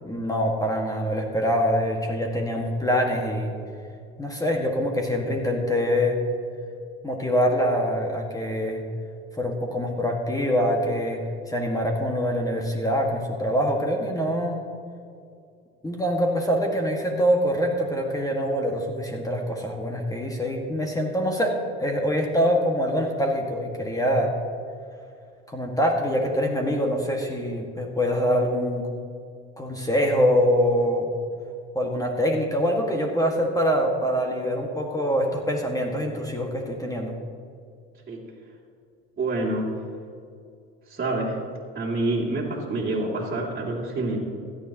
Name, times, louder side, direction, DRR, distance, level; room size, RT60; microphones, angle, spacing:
voice 1, 0.0-3.6 4.2-6.2 7.0-8.8 9.4-11.2 11.5-14.6 15.8-24.3 25.5-28.9 29.6-31.1 31.7-37.1, equal, 10° left, 1 dB, 1.8 m, -24 dB
voice 2, 39.2-39.7 40.9-41.4 41.7-44.2, right 2 dB, 30° right, -6 dB, 2.6 m, -27 dB
16.5 x 11.5 x 3.0 m, 2.4 s
hypercardioid pair, 70°, 31 cm